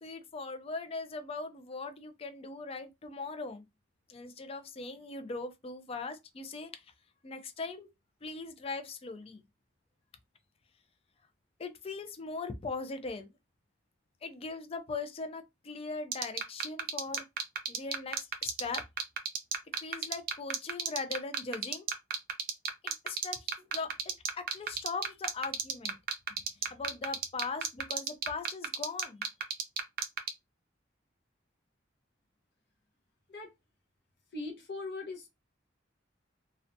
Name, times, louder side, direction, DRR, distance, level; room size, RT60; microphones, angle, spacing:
voice 1, 0.0-3.6 4.1-6.7 7.2-7.9 8.2-9.4 11.6-13.3 14.2-17.2 17.7-18.8 19.8-21.9 22.8-26.0 26.7-29.2, left 3 dB, 30° left, 0.4 m, -40 dB
sound 1, 16.1-30.3, right 7 dB, 55° right, 0.5 m, -31 dB
voice 2, 34.3-35.3, left 3 dB, 60° left, 0.7 m, -40 dB
2.4 x 2.1 x 2.6 m
head